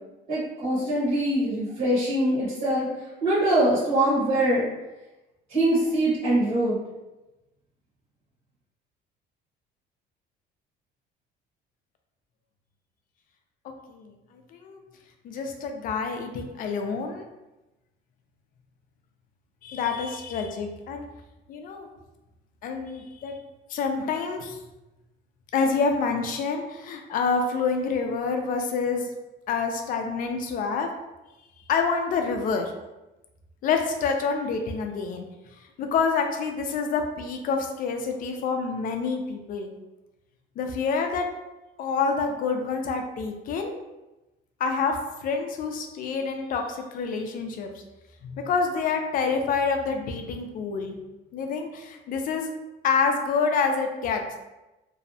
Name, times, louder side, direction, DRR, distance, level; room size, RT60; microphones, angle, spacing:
voice 1, 0.3-2.9 3.2-4.7 5.5-6.8, right 1 dB, 40° right, -9 dB, 1.1 m, -23 dB
voice 2, 15.2-17.3 19.6-21.0 21.5-21.9 22.6-23.4 23.7-24.6 25.5-29.1 29.5-30.9 31.7-32.7 33.6-35.3 35.8-39.7 40.6-41.2 41.8-43.7 44.6-47.7 48.2-51.0 51.3-52.5 52.8-54.2, left 5 dB, 45° left, 4 dB, 0.4 m, -27 dB
2.6 x 2.0 x 2.6 m, 1.0 s
cardioid pair, 150°, 19 cm